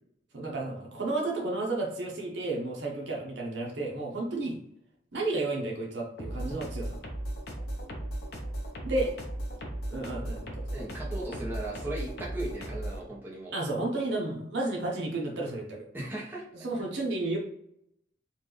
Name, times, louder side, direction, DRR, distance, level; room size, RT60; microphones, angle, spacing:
voice 1, 0.3-4.6 5.1-7.0 8.8-9.1 9.9-10.8 13.5-15.9 16.6-17.4, right 2 dB, 75° right, -2 dB, 1.0 m, -32 dB
sound 1, 6.2-13.0, right 1 dB, 60° left, 0.8 m, -36 dB
voice 2, 10.7-13.5 15.9-16.4, right 1 dB, 10° right, -6 dB, 0.9 m, -37 dB
4.2 x 2.5 x 3.2 m, 0.75 s
head